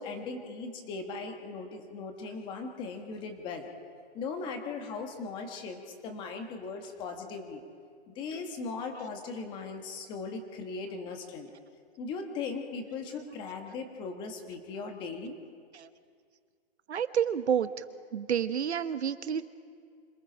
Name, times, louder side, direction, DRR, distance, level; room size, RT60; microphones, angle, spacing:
voice 1, 0.0-3.7 4.1-7.6 8.1-11.5 12.0-15.3, left 4 dB, 15° left, 5 dB, 1.3 m, -38 dB
voice 2, 16.9-17.8 18.1-19.5, right 8 dB, 85° right, 11 dB, 1.2 m, -29 dB
26.5 x 19.5 x 5.1 m, 2.1 s
hypercardioid pair, 165°, 32 cm